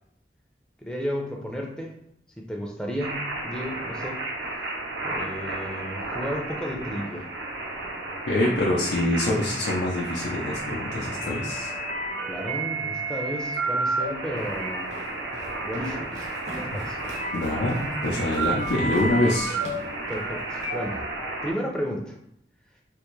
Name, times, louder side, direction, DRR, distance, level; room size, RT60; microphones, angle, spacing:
voice 1, 0.8-2.0 2.4-4.2 5.0-7.3 12.3-14.9 15.6-16.3 16.5-17.0 20.1-21.0 21.4-22.2, equal, 5° left, -1 dB, 0.4 m, -33 dB
sound 1, 3.0-21.5, right 2 dB, 85° right, 0.7 m, -31 dB
voice 2, 8.3-11.7 17.3-19.6, left 1 dB, 85° left, -4 dB, 0.5 m, -25 dB
Walk footsteps, 14.4-20.8, right 1 dB, 40° right, 0.6 m, -41 dB
3.4 x 2.5 x 3.1 m, 0.76 s
head